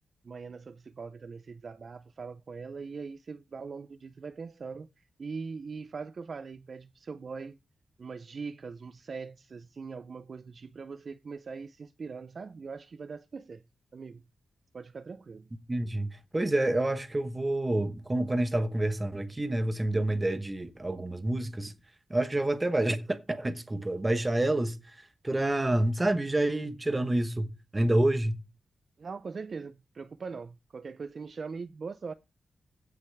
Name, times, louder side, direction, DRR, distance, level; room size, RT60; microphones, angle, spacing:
voice 1, 0.2-7.6 8.0-13.6 13.9-14.2 14.7-15.5 29.0-32.1, right 5 dB, 40° right, 0.5 m, -41 dB
voice 2, 15.7-21.7 22.1-27.5 27.7-28.4, right 1 dB, 15° right, 1.1 m, -28 dB
15.5 x 6.0 x 3.4 m
wide cardioid pair, 160°, 0 cm